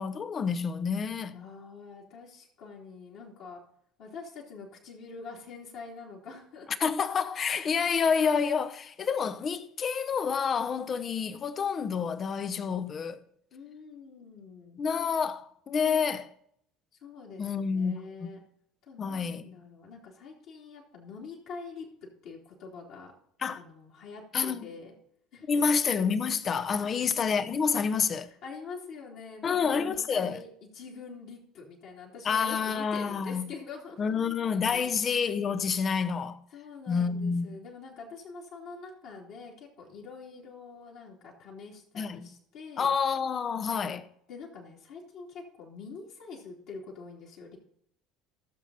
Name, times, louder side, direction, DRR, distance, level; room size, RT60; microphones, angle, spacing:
voice 1, 0.0-1.4 6.8-13.2 14.8-16.3 17.4-17.9 18.2-18.3 19.0-19.5 23.4-23.6 24.3-24.7 25.5-28.3 29.4-30.4 32.2-33.4 34.0-36.4 36.9-37.6 42.0-42.3 42.8-44.0, left 6 dB, 35° left, 0.9 m, -28 dB
voice 2, 1.3-3.6 4.0-6.7 13.5-14.8 17.0-18.4 18.8-21.9 22.2-23.1 23.5-24.9 25.3-25.6 28.3-30.5 30.7-34.3 34.7-34.9 36.5-42.9 43.7-47.6, left 4 dB, 55° left, 3.0 m, -45 dB
16.0 x 7.3 x 4.1 m
figure-of-eight pair, 65°, 0 cm